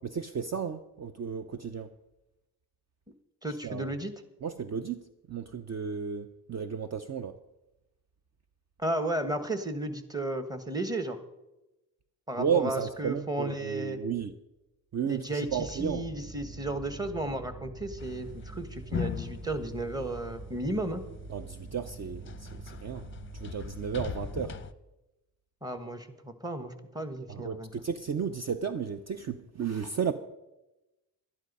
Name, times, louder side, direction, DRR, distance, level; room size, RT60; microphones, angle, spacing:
voice 1, 0.0-1.9 3.6-3.9 4.4-5.0 5.3-7.3 12.4-14.3 14.9-16.1 21.3-23.1 23.3-24.6 27.3-30.1, right 7 dB, 40° right, 10 dB, 0.6 m, -33 dB
voice 2, 3.4-4.1 8.8-11.2 12.3-14.0 15.0-21.0 25.6-27.7, right 1 dB, 10° right, 9 dB, 1.2 m, -34 dB
sound 1, 15.4-24.6, right 2 dB, 70° right, 5.8 m, -45 dB
sound 2, 18.0-20.9 21.4-24.7, left 8 dB, 30° left, 0.6 m, -39 dB
12.0 x 11.0 x 5.4 m, 0.97 s
cardioid pair, 95°, 40 cm